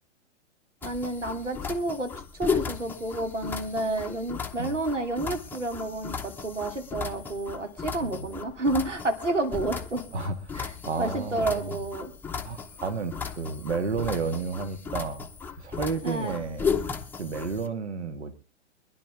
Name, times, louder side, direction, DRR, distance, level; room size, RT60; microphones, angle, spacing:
sound 1, 0.8-17.7, left 6 dB, 5° left, 0.9 m, -35 dB
voice 1, 0.8-10.0 10.5-10.7 11.0-12.1 16.0-16.4, right 2 dB, 85° right, 6 dB, 2.7 m, -30 dB
voice 2, 10.8-11.8 12.4-15.3 15.6-16.7 17.2-18.3, right 5 dB, 65° right, 10 dB, 1.8 m, -31 dB
23.5 x 11.0 x 3.4 m, 0.31 s
figure-of-eight pair, 110°, 36 cm